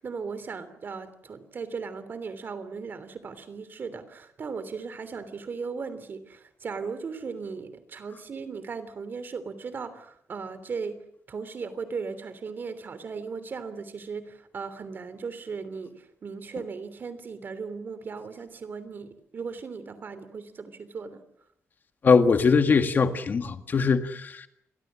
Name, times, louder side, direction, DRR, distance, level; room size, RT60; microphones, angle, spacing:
voice 1, 0.0-11.0 11.3-21.2, right 5 dB, 45° right, 3.1 m, -37 dB
voice 2, 22.0-24.5, left 5 dB, 40° left, 1.8 m, -21 dB
29.0 x 23.0 x 7.5 m
wide cardioid pair, 180°, 5 cm